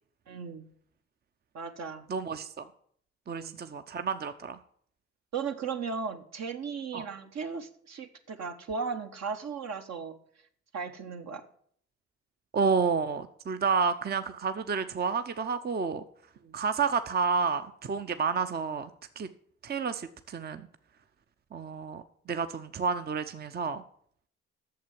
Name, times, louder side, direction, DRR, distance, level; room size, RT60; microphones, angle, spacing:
voice 1, 0.3-0.7 1.5-2.0 3.3-3.6 5.3-10.2 10.7-11.4 16.4-16.6, right 5 dB, 60° right, 6 dB, 1.2 m, -36 dB
voice 2, 2.1-2.7 3.3-4.6 6.9-7.0 12.5-16.0 16.5-18.9 19.2-19.3 19.6-20.7 21.5-23.8, right 5 dB, 30° right, 10 dB, 0.6 m, -30 dB
8.5 x 6.8 x 7.5 m, 0.63 s
hypercardioid pair, 55°, 31 cm